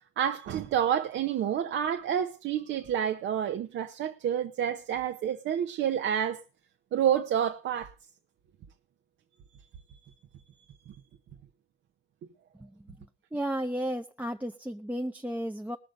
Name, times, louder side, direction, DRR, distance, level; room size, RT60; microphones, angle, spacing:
voice 1, 0.2-6.4 6.9-7.9 10.9-11.0, right 9 dB, 75° right, 0.8 m, -29 dB
voice 2, 12.6-15.8, right 1 dB, 10° right, 0.6 m, -34 dB
19.0 x 6.7 x 5.2 m
cardioid pair, 90°, 20 cm